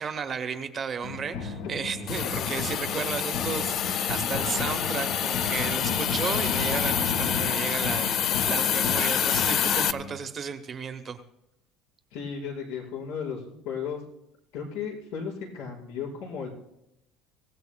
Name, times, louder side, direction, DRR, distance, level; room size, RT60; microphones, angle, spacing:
voice 1, 0.0-11.2, right 6 dB, 25° right, 8 dB, 0.8 m, -34 dB
sound 1, 1.0-10.2, left 5 dB, 65° left, 1.6 m, -34 dB
Hiss, 2.1-9.9, left 9 dB, 40° left, 0.4 m, -27 dB
voice 2, 12.1-14.0 14.5-16.5, left 6 dB, 85° left, -4 dB, 4.9 m, -35 dB
25.0 x 16.5 x 2.2 m, 0.85 s
cardioid pair, 175°, 0 cm